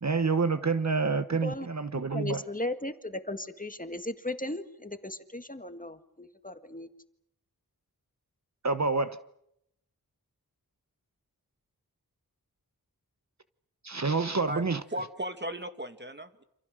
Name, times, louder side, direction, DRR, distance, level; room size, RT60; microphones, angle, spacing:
voice 1, 0.0-2.4 8.6-9.2 13.8-14.8, right 4 dB, 50° right, 1.1 m, -28 dB
voice 2, 2.1-6.9, left 1 dB, 20° left, 1.9 m, -36 dB
voice 3, 14.5-16.4, right 1 dB, 30° right, 2.3 m, -37 dB
28.5 x 27.5 x 6.6 m
wide cardioid pair, 55°, 36 cm